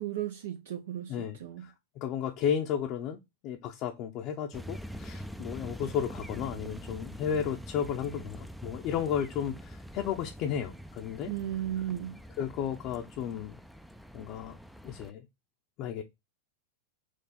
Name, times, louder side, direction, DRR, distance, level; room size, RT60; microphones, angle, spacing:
voice 1, 0.0-1.7 11.3-12.2, right 12 dB, 75° right, 0.6 m, -35 dB
voice 2, 1.1-11.3 12.4-13.6 14.1-14.6 14.8-15.3 15.8-16.0, left 8 dB, 45° left, 0.6 m, -33 dB
sound 1, 4.5-15.1, equal, ahead, 0.4 m, -44 dB
4.5 x 2.4 x 4.1 m
hypercardioid pair, 120°, 0 cm